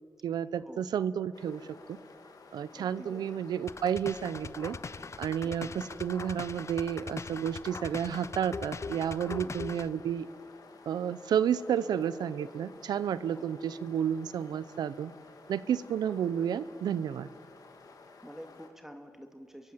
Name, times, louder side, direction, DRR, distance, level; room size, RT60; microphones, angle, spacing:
voice 1, 0.2-1.6 1.9-2.0 2.5-4.8 5.2-10.3 10.9-15.1 15.5-17.3, right 8 dB, 85° right, 16 dB, 0.7 m, -31 dB
sound 1, 1.3-18.7, left 4 dB, 65° left, 3.2 m, -54 dB
voice 2, 2.7-3.3 13.3-13.6 18.2-19.7, equal, 5° right, 5 dB, 2.2 m, -49 dB
sound 2, 3.7-9.9, left 4 dB, 45° left, 0.7 m, -41 dB
26.5 x 23.0 x 7.4 m, 2.3 s
cardioid pair, 60°, 7 cm